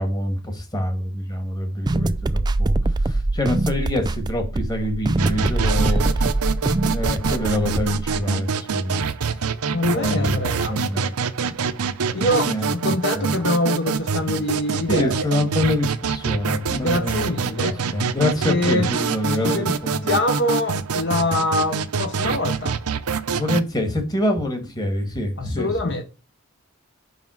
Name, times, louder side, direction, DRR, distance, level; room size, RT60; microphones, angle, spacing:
voice 1, 0.0-6.3 6.9-9.0 9.9-11.1 12.2-12.7 13.1-13.3 14.9-20.1 23.3-25.7, left 1 dB, 20° left, 1.5 m, -26 dB
sound 1, 1.9-8.2, right 2 dB, 20° right, 0.3 m, -23 dB
sound 2, 5.2-23.6, right 5 dB, 85° right, 0.7 m, -25 dB
voice 2, 5.8-6.1 9.7-10.8 12.1-15.1 16.7-17.8 18.4-18.9 19.4-19.8 20.0-22.8 25.4-26.0, left 1 dB, 50° left, 0.9 m, -24 dB
5.6 x 5.2 x 6.1 m
head